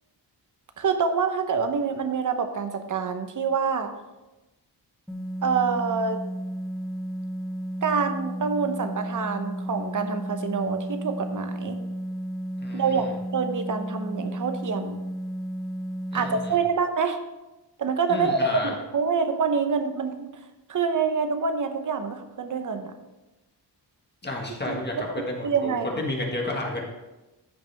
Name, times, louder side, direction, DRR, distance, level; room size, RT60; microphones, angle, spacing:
voice 1, 0.8-3.9 5.4-6.2 7.8-11.8 12.7-15.0 16.1-17.2 17.8-20.3 20.7-22.9 24.6-24.8 25.1-26.0, right 5 dB, 50° right, 7 dB, 0.9 m, -26 dB
sound 1, 5.1-16.5, equal, ahead, 0.7 m, -33 dB
voice 2, 12.6-13.0 16.1-16.6 18.1-18.7 24.2-26.8, left 2 dB, 25° left, -1 dB, 1.7 m, -31 dB
14.0 x 6.0 x 3.5 m, 1.0 s
wide cardioid pair, 135°, 41 cm